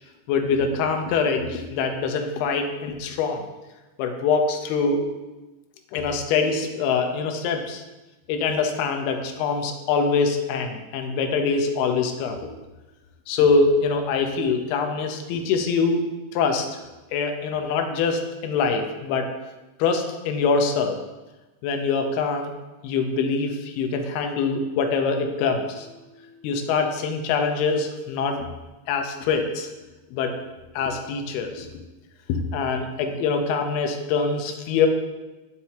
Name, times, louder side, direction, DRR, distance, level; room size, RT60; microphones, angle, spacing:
voice 1, 0.3-3.4 4.0-5.0 5.9-7.8 8.3-12.5 13.3-16.0 16.3-16.7 17.1-19.3 19.8-21.0 21.6-22.5 22.8-26.1 26.4-28.5 28.9-29.7 30.1-30.3 30.8-31.7 32.3-34.9, left 4 dB, 80° left, 4 dB, 2.5 m, -24 dB
11.5 x 4.5 x 2.8 m, 1.1 s
omnidirectional pair, 4.9 m